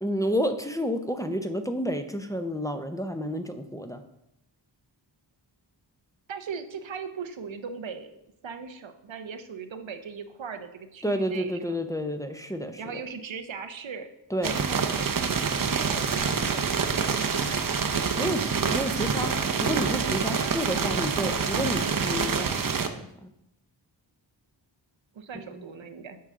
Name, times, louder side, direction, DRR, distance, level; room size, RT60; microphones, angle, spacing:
voice 1, 0.0-4.0 11.0-12.8 14.3-14.6 18.1-19.3 19.6-23.3 25.5-25.6, equal, 10° left, 6 dB, 0.6 m, -30 dB
voice 2, 6.3-11.8 12.8-14.1 14.5-16.9 25.1-26.2, right 6 dB, 90° right, 8 dB, 0.8 m, -39 dB
sound 1, 14.4-22.9, right 5 dB, 50° right, 0.6 m, -26 dB
8.6 x 5.6 x 3.6 m, 0.81 s
wide cardioid pair, 85°, 45 cm